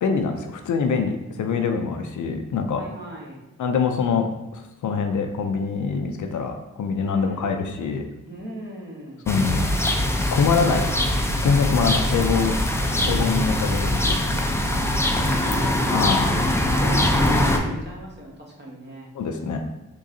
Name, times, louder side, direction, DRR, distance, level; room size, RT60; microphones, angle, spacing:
voice 1, 0.0-2.8 3.6-4.3 4.5-8.1 9.3-9.6 10.3-10.9 11.4-12.6 13.1-14.2 15.9-16.3 19.2-19.6, left 5 dB, 60° left, 5 dB, 0.5 m, -24 dB
voice 2, 2.7-3.4 7.0-7.6 8.2-9.4 14.5-16.3 16.7-19.1, right 1 dB, 30° right, -3 dB, 1.2 m, -37 dB
sound 1, 9.3-17.6, left 1 dB, 10° left, 0.5 m, -22 dB
3.6 x 3.0 x 2.6 m, 1.0 s
supercardioid pair, 40°, 34 cm